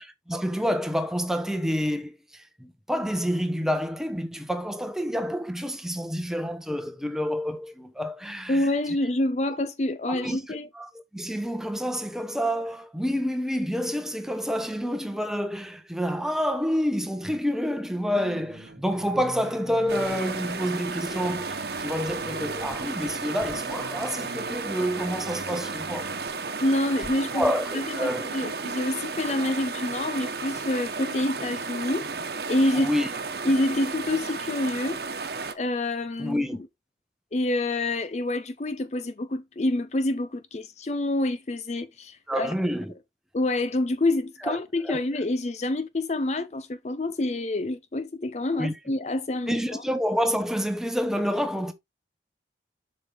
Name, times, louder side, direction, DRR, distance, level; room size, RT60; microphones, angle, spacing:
voice 1, 0.0-8.7 10.1-26.1 27.3-28.3 32.7-33.1 36.2-36.6 42.3-42.9 44.4-44.6 44.8-45.0 48.5-48.7 49.5-51.7, equal, 5° right, 1.0 m, -28 dB
voice 2, 8.5-10.7 26.6-32.1 32.5-32.9 33.4-35.0 35.5-36.4 37.3-42.5 43.3-49.8, left 1 dB, 40° left, 0.5 m, -27 dB
sound 1, 18.2-26.3, right 3 dB, 85° right, 0.7 m, -45 dB
sound 2, 19.9-35.5, right 4 dB, 60° right, 1.1 m, -33 dB
7.5 x 5.3 x 3.4 m
head